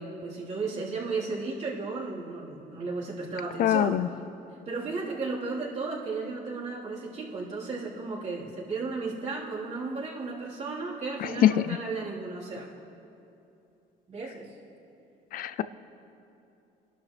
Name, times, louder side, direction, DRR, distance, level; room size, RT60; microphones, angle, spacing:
voice 1, 0.0-4.0 4.7-12.7 14.1-14.5, right 3 dB, 40° right, -7 dB, 3.8 m, -34 dB
voice 2, 3.6-4.1 11.2-11.8 15.3-15.6, left 11 dB, 60° left, 15 dB, 0.4 m, -23 dB
24.5 x 12.0 x 3.3 m, 2.7 s
cardioid pair, 110°, 17 cm